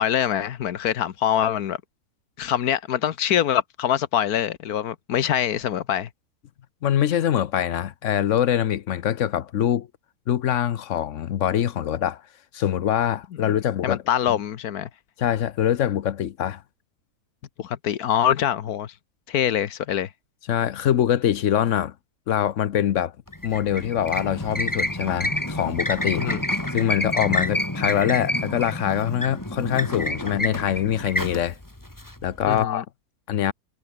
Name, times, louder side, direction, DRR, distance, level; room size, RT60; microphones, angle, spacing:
voice 1, 0.0-1.8 2.4-6.1 13.8-14.9 17.6-18.9 19.3-20.1 26.2-26.4 32.5-32.8, left 10 dB, 90° left, 1.5 m, -24 dB
voice 2, 6.8-9.9 10.3-12.2 12.5-14.0 14.3-14.4 15.2-16.6 20.5-21.9 22.3-23.1 23.4-26.3 26.7-31.6 32.2-32.8 33.3-33.5, left 10 dB, 60° left, 1.1 m, -24 dB
sound 1, 23.3-32.6, left 1 dB, 10° left, 2.8 m, -28 dB
omnidirectional pair, 1.5 m